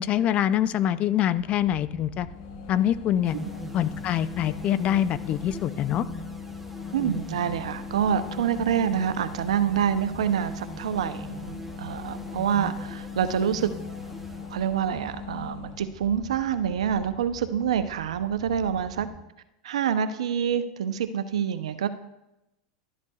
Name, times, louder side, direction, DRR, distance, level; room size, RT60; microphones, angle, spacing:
voice 1, 0.0-2.3 2.7-3.4 3.7-6.1, left 11 dB, 40° left, 15 dB, 0.4 m, -24 dB
sound 1, 1.4-19.2, right 2 dB, 25° right, 2.2 m, -46 dB
sound 2, 2.3-15.8, left 8 dB, 65° left, 1.0 m, -40 dB
sound 3, 3.2-15.1, right 1 dB, 5° right, 0.9 m, -43 dB
voice 2, 6.9-13.7 14.5-19.1 19.6-21.9, right 8 dB, 85° right, 11 dB, 0.6 m, -27 dB
12.0 x 11.0 x 2.4 m, 0.93 s
hypercardioid pair, 105°, 3 cm